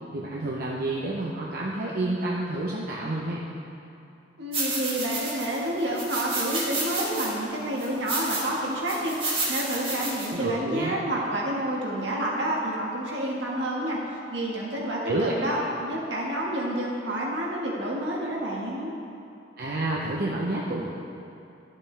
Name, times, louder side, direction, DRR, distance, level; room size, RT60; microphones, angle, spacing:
voice 1, 0.1-3.4 10.0-10.9 15.1-15.3 19.6-20.9, right 2 dB, 55° right, -3 dB, 0.7 m, -29 dB
voice 2, 4.4-18.9, right 1 dB, 80° right, -3 dB, 1.6 m, -29 dB
sound 1, 4.5-5.6 6.0-7.3 7.8-8.5 8.9-10.3, right 2 dB, 30° right, 1.9 m, -30 dB
12.0 x 7.4 x 3.3 m, 2.8 s
head